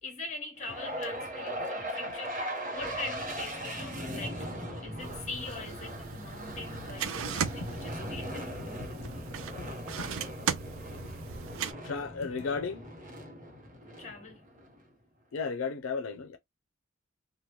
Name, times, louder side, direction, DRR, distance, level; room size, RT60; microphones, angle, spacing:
voice 1, 0.0-8.9 14.0-14.5, left 3 dB, 35° left, 1.2 m, -43 dB
sound 1, 0.6-14.8, equal, 40° right, 0.8 m, -39 dB
sound 2, 5.0-11.7, right 7 dB, 80° right, 0.4 m, -38 dB
voice 2, 11.8-12.9 15.3-16.4, left 5 dB, 85° left, 0.5 m, -34 dB
2.9 x 2.2 x 3.1 m
head